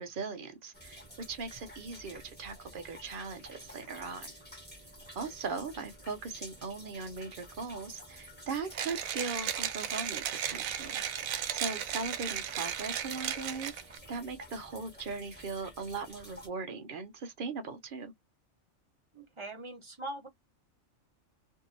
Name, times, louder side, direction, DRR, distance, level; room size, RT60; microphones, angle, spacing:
voice 1, 0.0-4.3 5.1-11.0 11.5-18.1, right 4 dB, 50° right, 0.7 m, -39 dB
sound 1, 0.7-16.5, equal, 10° left, 1.2 m, -51 dB
Mechanisms, 8.7-14.0, right 10 dB, 85° right, 1.0 m, -35 dB
voice 2, 19.1-20.3, right 1 dB, 25° right, 0.9 m, -42 dB
2.7 x 2.7 x 2.6 m
omnidirectional pair, 1.4 m